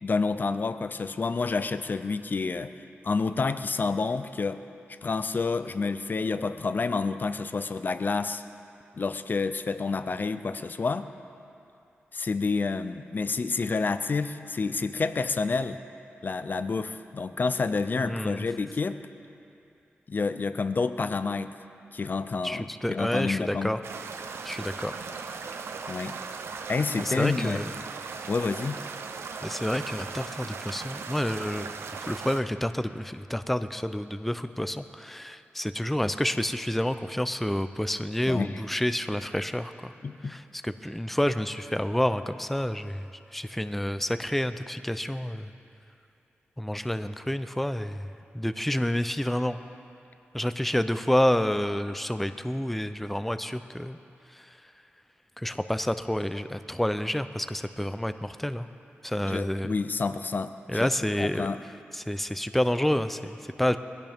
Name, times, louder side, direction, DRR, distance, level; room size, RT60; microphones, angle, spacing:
voice 1, 0.0-2.7 3.0-4.6 5.0-8.4 9.0-11.1 12.1-15.8 16.2-19.0 20.1-21.5 21.9-23.7 25.9-26.2 26.7-27.6 28.3-28.8 38.3-38.6 40.0-40.4 59.2-60.9 61.2-61.6, left 4 dB, 50° left, 12 dB, 0.5 m, -29 dB
voice 2, 18.0-18.4 22.4-23.8 24.4-24.9 27.0-27.7 29.4-31.7 32.0-39.9 40.3-43.0 43.3-45.5 46.6-48.0 48.3-49.6 50.3-54.0 55.4-58.7 59.0-59.7 60.7-61.5 61.9-63.8, left 1 dB, 5° left, 10 dB, 0.5 m, -29 dB
sound 1, 23.8-32.4, right 5 dB, 85° right, 0.7 m, -38 dB
21.5 x 16.0 x 3.6 m, 2.7 s
wide cardioid pair, 85°, 4 cm